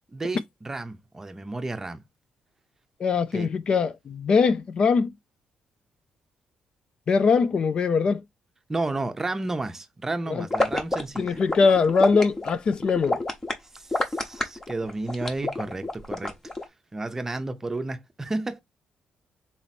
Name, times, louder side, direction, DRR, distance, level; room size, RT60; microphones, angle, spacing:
voice 1, 0.0-2.0 3.3-3.5 8.7-11.4 13.7-16.4 16.9-18.6, right 2 dB, 20° right, 0.7 m, -32 dB
voice 2, 3.0-5.1 7.1-8.2 10.3-10.4 11.2-13.2, left 5 dB, 45° left, 0.4 m, -22 dB
sound 1, 10.5-16.6, left 2 dB, 20° left, 1.0 m, -28 dB
4.1 x 3.0 x 4.2 m
cardioid pair, 105°, 2 cm